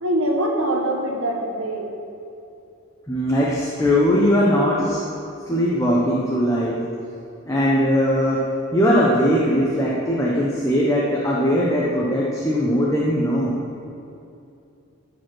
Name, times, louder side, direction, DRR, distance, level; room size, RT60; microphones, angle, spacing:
voice 1, 0.0-1.9, right 1 dB, 75° right, 2 dB, 1.3 m, -23 dB
voice 2, 3.1-5.0 5.5-6.8 7.4-13.5, equal, 15° left, -5 dB, 1.0 m, -20 dB
13.0 x 5.3 x 6.1 m, 2.7 s
head